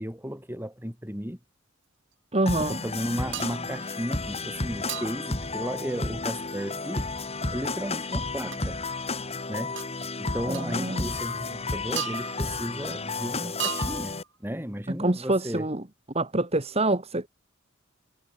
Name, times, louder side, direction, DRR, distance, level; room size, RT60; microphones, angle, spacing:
voice 1, 0.0-1.4 2.6-7.1 7.5-8.8 9.5-9.8 10.2-15.7, equal, 10° right, 5.0 m, -34 dB
voice 2, 2.3-2.8 10.5-11.0 15.0-15.8 16.1-17.3, right 2 dB, 30° right, 2.1 m, -26 dB
sound 1, 2.5-14.2, left 3 dB, 30° left, 4.6 m, -32 dB
sound 2, 3.3-3.7 4.9-5.3 8.5-8.6 9.8-9.9 10.5-10.7 12.0-12.6 13.6-14.3, right 8 dB, 60° right, 4.9 m, -34 dB
head